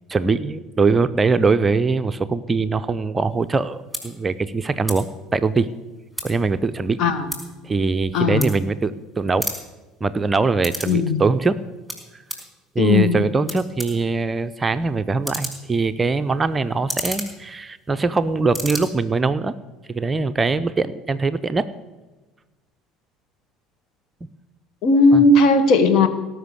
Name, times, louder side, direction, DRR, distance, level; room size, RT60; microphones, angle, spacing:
voice 1, 0.1-5.7 6.2-7.0 7.6-9.5 10.0-11.6 12.1-12.2 12.7-19.6 19.9-21.7 25.1-25.2, right 4 dB, 20° right, 11 dB, 0.6 m, -22 dB
sound 1, 3.4-3.5 3.9-4.0 4.8-5.0 5.3-6.5 6.8-9.0 9.3-11.0 11.3-12.5 13.1-13.2 13.4-18.1 18.4-18.8, right 1 dB, ahead, 4.8 m, -32 dB
voice 2, 8.1-8.5 10.9-11.2 12.8-13.2 24.8-26.1, left 3 dB, 50° left, 10 dB, 1.3 m, -16 dB
18.0 x 6.3 x 8.1 m, 1.2 s
figure-of-eight pair, 60°, 0 cm